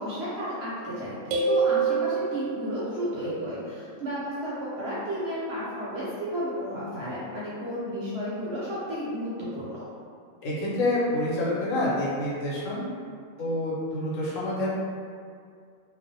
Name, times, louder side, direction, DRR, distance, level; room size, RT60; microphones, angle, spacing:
voice 1, 0.0-9.9, equal, 65° right, -8 dB, 0.7 m, -32 dB
sound 1, 1.3-2.8, right 5 dB, 90° right, 1.0 m, -25 dB
voice 2, 10.4-12.9 13.4-14.7, left 1 dB, 80° left, -6 dB, 1.0 m, -27 dB
2.4 x 2.0 x 2.6 m, 2.2 s
omnidirectional pair, 1.4 m